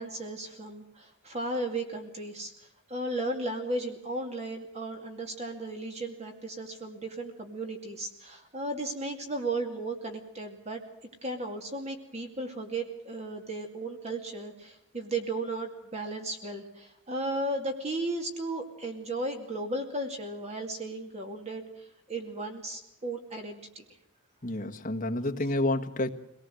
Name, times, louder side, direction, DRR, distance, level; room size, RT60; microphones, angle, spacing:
voice 1, 0.0-10.8 11.2-23.9, right 2 dB, 30° right, 4 dB, 2.4 m, -35 dB
voice 2, 24.4-26.1, left 1 dB, 35° left, 4 dB, 1.5 m, -29 dB
25.0 x 19.0 x 7.7 m, 0.81 s
head